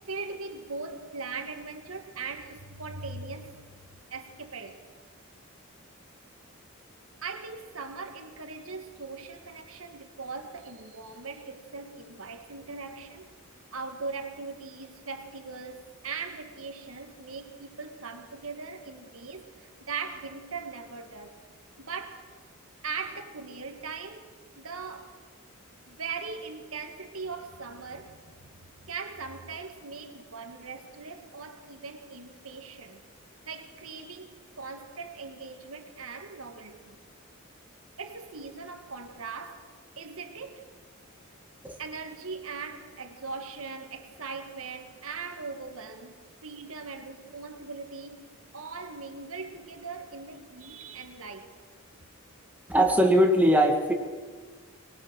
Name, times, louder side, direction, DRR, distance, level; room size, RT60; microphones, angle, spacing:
voice 1, 0.1-3.6 4.1-4.8 7.2-13.3 13.7-21.4 21.8-22.3 22.8-25.2 25.9-33.0 33.4-37.0 38.0-39.7 40.0-40.7 41.8-48.2 48.5-51.6, right 4 dB, 75° right, 1.8 m, -40 dB
voice 2, 52.7-53.9, equal, 5° right, 2.2 m, -20 dB
24.0 x 21.0 x 6.4 m
head